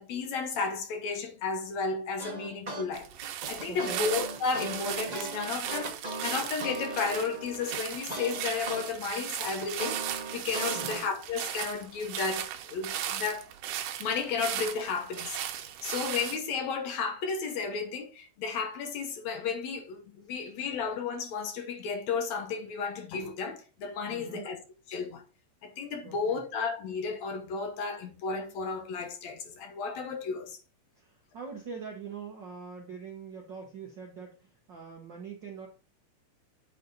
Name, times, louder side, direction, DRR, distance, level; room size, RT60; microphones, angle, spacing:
voice 1, 0.0-10.0 10.3-13.5 14.0-24.6 24.9-25.2 25.6-30.6, left 5 dB, 65° left, 2.1 m, -33 dB
sound 1, 2.2-2.8 3.2-8.8 9.2-11.0, right 2 dB, 25° right, 0.8 m, -38 dB
sound 2, 2.9-16.4, right 11 dB, 85° right, 2.4 m, -37 dB
voice 2, 3.7-4.1 10.7-11.0 24.1-24.5 26.0-26.4 30.9-35.7, right 5 dB, 60° right, 1.2 m, -43 dB
8.5 x 4.1 x 4.0 m
omnidirectional pair, 3.6 m